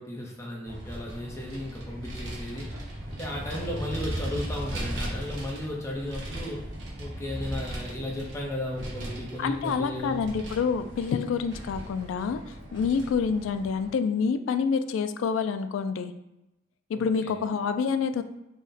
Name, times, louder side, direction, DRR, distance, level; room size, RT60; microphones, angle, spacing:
voice 1, 0.0-2.7 3.1-6.7 7.0-10.2 16.9-17.3, left 1 dB, 15° left, -2 dB, 0.6 m, -35 dB
Vehicle, 0.7-13.9, right 1 dB, 80° right, 0.9 m, -37 dB
voice 2, 9.4-16.1 16.9-18.2, left 5 dB, 90° left, 10 dB, 0.3 m, -27 dB
3.7 x 2.1 x 3.9 m, 0.93 s
head